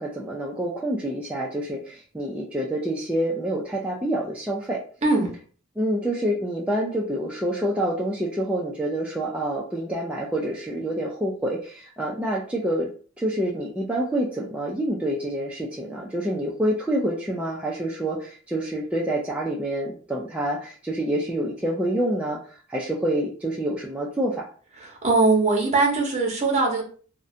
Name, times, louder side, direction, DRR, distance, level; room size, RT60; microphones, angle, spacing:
voice 1, 0.0-4.8 5.8-12.9 13.2-24.5, right 1 dB, 5° right, -4 dB, 0.3 m, -27 dB
voice 2, 24.8-26.8, right 3 dB, 35° right, 0 dB, 0.7 m, -21 dB
2.5 x 2.1 x 2.6 m, 0.42 s
head